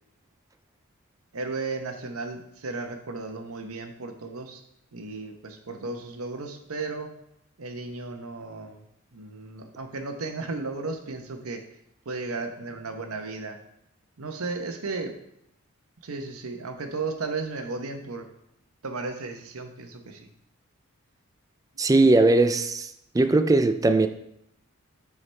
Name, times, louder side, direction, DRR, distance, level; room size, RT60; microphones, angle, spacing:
voice 1, 1.3-4.6 4.9-7.1 7.6-8.8 9.1-11.6 12.1-13.6 14.2-15.1 16.0-18.3 18.8-20.3, right 3 dB, 80° right, 0.9 m, -34 dB
voice 2, 21.8-22.9 23.1-24.1, right 2 dB, 15° right, 0.4 m, -19 dB
9.7 x 4.8 x 3.3 m
head